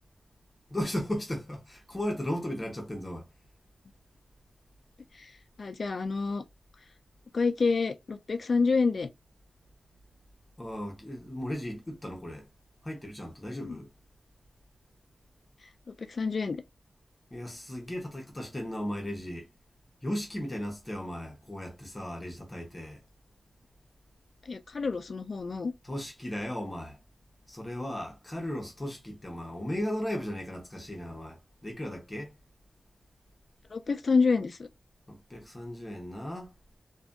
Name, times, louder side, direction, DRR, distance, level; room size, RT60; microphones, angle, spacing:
voice 1, 0.7-3.3 10.6-12.5 12.8-13.9 17.3-19.5 20.0-23.0 25.9-27.0 27.5-32.3 35.1-36.5, left 1 dB, 15° left, 0.7 m, -36 dB
voice 2, 5.6-6.4 7.3-9.1 13.5-13.8 16.0-16.6 24.5-25.7 33.7-34.7, left 4 dB, 45° left, 0.3 m, -28 dB
2.6 x 2.4 x 2.4 m
wide cardioid pair, 160°, 0 cm